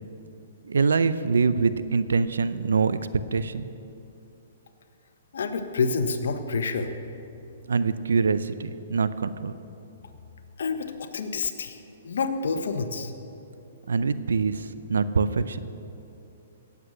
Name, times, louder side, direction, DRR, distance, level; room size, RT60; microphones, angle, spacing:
voice 1, 0.6-3.0 3.3-3.7 7.7-9.5 13.9-15.6, right 5 dB, 90° right, 14 dB, 0.6 m, -24 dB
voice 2, 5.3-6.9 10.6-11.8 12.0-13.1, left 4 dB, 75° left, 7 dB, 1.2 m, -28 dB
17.0 x 8.3 x 6.5 m, 2.8 s
hypercardioid pair, 145°, 0 cm